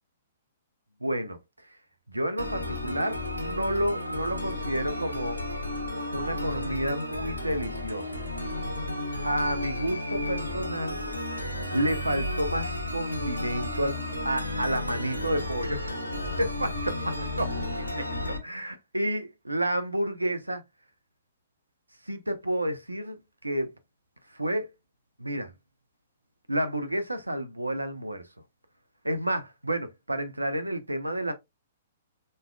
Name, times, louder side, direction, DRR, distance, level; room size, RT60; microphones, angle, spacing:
voice 1, 1.0-1.4 1.7-1.8 2.1-5.4 6.1-8.2 9.2-11.3 11.7-16.0 16.4-20.6 22.0-23.7 24.3-24.7 25.2-25.5 26.5-28.3 29.0-31.3, right 1 dB, 85° right, 0.8 m, -30 dB
sound 1, 2.4-18.4, left 1 dB, 85° left, 1.1 m, -33 dB
5.5 x 3.6 x 2.3 m
figure-of-eight pair, 115°, 0 cm